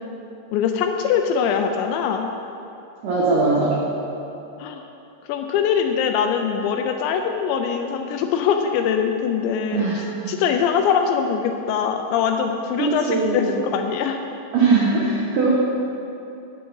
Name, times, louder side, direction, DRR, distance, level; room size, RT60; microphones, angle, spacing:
voice 1, 0.5-2.3 4.6-4.8 5.3-9.8 10.3-14.2, left 7 dB, 85° left, 5 dB, 2.6 m, -22 dB
voice 2, 3.0-3.8 9.7-10.0 12.8-13.5 14.5-15.5, right 4 dB, 90° right, -5 dB, 1.8 m, -20 dB
9.8 x 7.7 x 5.5 m, 2.8 s
omnidirectional pair, 5.4 m